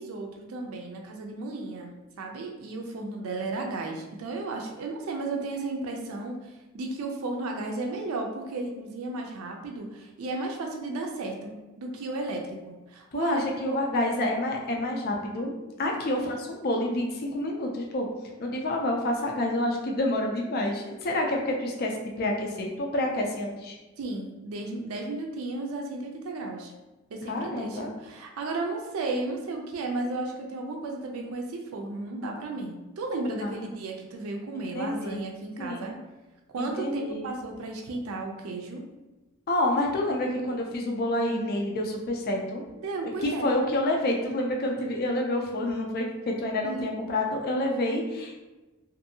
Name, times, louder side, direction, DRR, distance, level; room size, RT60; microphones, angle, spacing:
voice 1, 0.0-1.9 2.2-13.8 16.1-16.2 24.0-26.7 27.1-36.0 36.5-38.8 42.8-43.5 46.6-46.9, right 2 dB, 85° right, 2 dB, 0.4 m, -34 dB
voice 2, 13.1-18.1 18.4-23.7 27.3-27.9 33.4-33.6 34.8-35.2 35.6-35.8 36.6-37.3 39.5-42.6 43.0-48.4, left 1 dB, 50° left, 1 dB, 0.4 m, -28 dB
2.6 x 2.6 x 2.7 m, 1.1 s
head